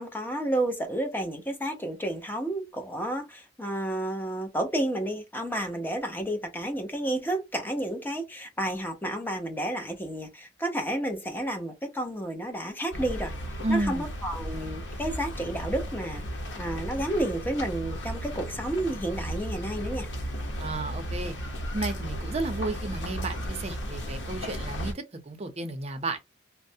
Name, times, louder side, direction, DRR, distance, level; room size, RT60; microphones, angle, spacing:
voice 1, 0.0-13.3 13.7-16.2 16.6-20.1, right 1 dB, 10° left, 0.6 m, -31 dB
sound 1, 12.9-24.9, equal, 80° left, 0.8 m, -35 dB
voice 2, 13.6-14.1 20.6-21.4 21.7-26.2, right 2 dB, 35° right, 0.6 m, -32 dB
3.2 x 2.1 x 2.7 m
head